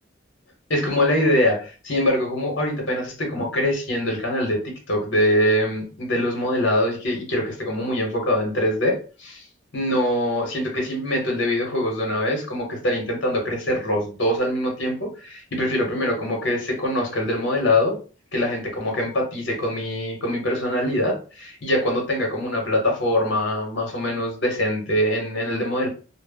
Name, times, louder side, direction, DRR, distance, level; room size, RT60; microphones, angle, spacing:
voice 1, 0.7-4.6 4.9-9.4 9.7-18.0 18.3-25.9, left 1 dB, 60° left, 1 dB, 0.9 m, -23 dB
2.0 x 2.0 x 3.4 m, 0.36 s
head